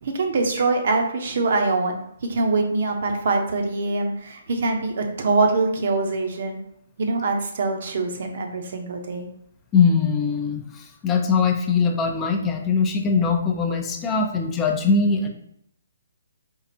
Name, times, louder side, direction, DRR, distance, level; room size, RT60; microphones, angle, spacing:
voice 1, 0.0-6.6 7.0-9.3, right 3 dB, 55° right, 4 dB, 0.6 m, -24 dB
voice 2, 9.7-15.3, left 5 dB, 20° left, 3 dB, 0.5 m, -21 dB
4.5 x 2.4 x 2.8 m, 0.72 s
figure-of-eight pair, 130°, 0 cm